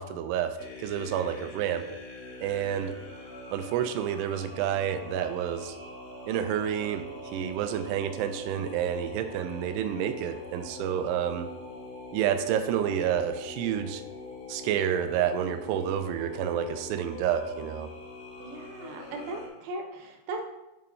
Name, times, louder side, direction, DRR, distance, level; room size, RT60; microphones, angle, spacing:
voice 1, 0.0-1.8 2.4-3.0 3.5-5.8 6.3-11.5 12.1-14.0 14.5-17.9, right 9 dB, 90° right, 8 dB, 2.7 m, -29 dB
sound 1, 0.6-19.5, left 2 dB, 70° left, 3.4 m, -44 dB
voice 2, 18.4-20.4, right 2 dB, 70° right, 2 dB, 2.4 m, -38 dB
11.0 x 5.0 x 2.8 m, 0.98 s
omnidirectional pair, 4.7 m